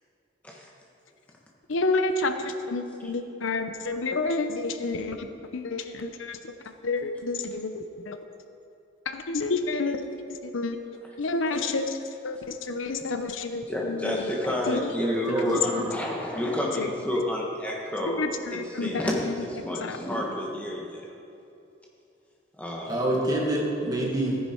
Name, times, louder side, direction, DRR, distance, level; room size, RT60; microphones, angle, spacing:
voice 1, 1.7-6.5 6.8-8.2 9.1-10.0 10.4-10.8 11.2-12.0 12.2-14.3 14.7-15.0 15.5-15.9 16.8-16.9 18.1-19.4 19.8-20.0, left 3 dB, 80° left, 8 dB, 0.7 m, -29 dB
voice 2, 13.7-21.1 22.6-23.0, left 1 dB, 5° left, -2 dB, 1.5 m, -30 dB
voice 3, 15.0-15.9 22.9-24.4, right 1 dB, 20° right, -2 dB, 1.7 m, -27 dB
14.5 x 10.0 x 4.5 m, 2.8 s
head